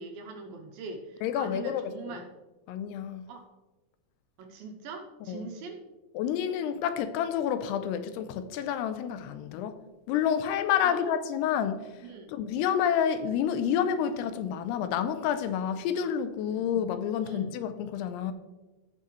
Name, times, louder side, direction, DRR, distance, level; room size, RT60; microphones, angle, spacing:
voice 1, 0.0-2.3 3.3-3.5 4.4-5.8 10.8-11.1 12.0-12.3 16.5-16.6 17.2-17.5, right 4 dB, 80° right, 2.3 m, -42 dB
voice 2, 1.2-2.2 2.7-3.3 5.3-5.5 6.2-9.8 10.1-12.0 12.3-18.3, left 8 dB, 85° left, 2.7 m, -29 dB
15.0 x 5.8 x 3.1 m
omnidirectional pair, 4.6 m